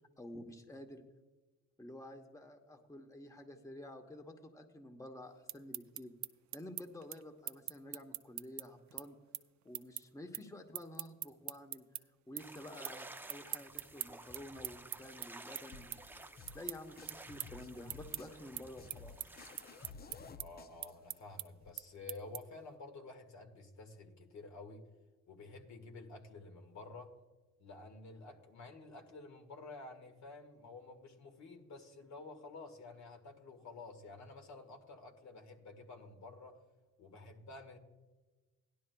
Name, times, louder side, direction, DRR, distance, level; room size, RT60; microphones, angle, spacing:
voice 1, 0.2-1.0 1.8-6.1 6.5-9.2 9.6-11.8 12.3-16.0 16.5-19.1, left 1 dB, 10° left, 6 dB, 1.0 m, -50 dB
sound 1, 5.3-12.0 12.4-13.0 13.3-22.7, right 13 dB, 65° right, 0.6 m, -44 dB
sound 2, 12.4-19.9, right 2 dB, 5° right, 0.5 m, -53 dB
sound 3, 15.7-21.7, left 4 dB, 30° left, 0.6 m, -55 dB
voice 2, 20.3-24.9 25.3-27.2 27.6-36.6 37.0-37.8, left 3 dB, 65° left, 4 dB, 1.8 m, -51 dB
17.0 x 11.5 x 2.3 m, 1.2 s
cardioid pair, 90°, 30 cm